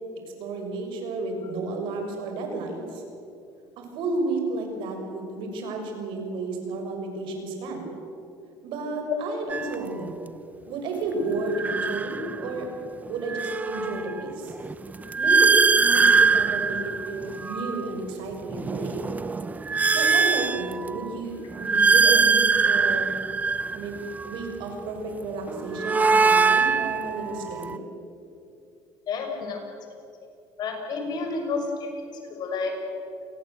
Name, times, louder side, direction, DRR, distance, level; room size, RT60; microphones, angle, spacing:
voice 1, 0.4-3.0 3.8-7.8 8.6-10.2 10.7-12.7 13.1-14.5 15.2-19.1 19.9-23.1 23.7-24.0 24.2-27.8, right 2 dB, 70° right, 4 dB, 6.5 m, -32 dB
sound 1, 9.5-9.7 11.4-12.6 13.1-17.9 18.4-21.1 21.5-24.5 25.5-27.8, right 4 dB, 20° right, 0.8 m, -23 dB
voice 2, 29.1-29.6 30.6-31.9 32.3-32.7, left 4 dB, 50° left, 3 dB, 6.5 m, -30 dB
29.0 x 21.5 x 8.1 m, 2.6 s
cardioid pair, 125°, 9 cm